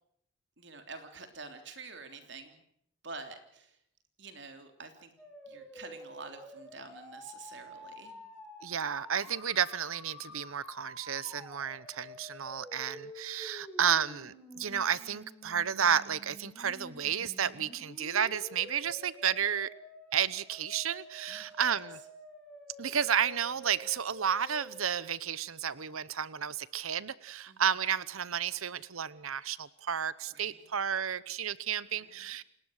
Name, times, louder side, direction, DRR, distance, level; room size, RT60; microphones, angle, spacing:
voice 1, 0.6-2.6 3.0-3.8 4.2-5.1 5.5-8.3 21.3-21.8 27.5-27.6 30.3-30.7 31.9-32.3, right 4 dB, 55° right, 6 dB, 3.3 m, -48 dB
sound 1, 5.2-25.1, equal, 5° left, 6.1 m, -49 dB
voice 2, 8.6-19.7 20.1-22.0 22.8-32.4, right 8 dB, 85° right, 18 dB, 0.9 m, -32 dB
29.5 x 18.5 x 6.6 m, 0.70 s
head